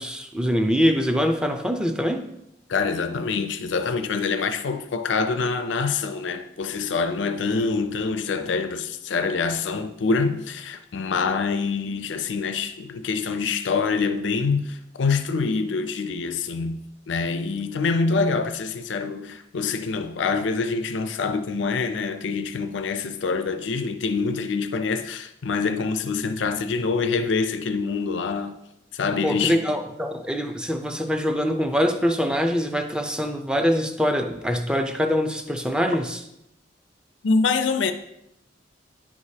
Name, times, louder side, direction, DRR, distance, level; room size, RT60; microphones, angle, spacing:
voice 1, 0.0-2.3 29.2-36.2, equal, 5° right, 0.5 m, -24 dB
voice 2, 2.7-16.8 17.1-28.6 28.9-29.7 37.2-37.9, left 4 dB, 85° left, 0.5 m, -25 dB
10.5 x 4.8 x 2.8 m
head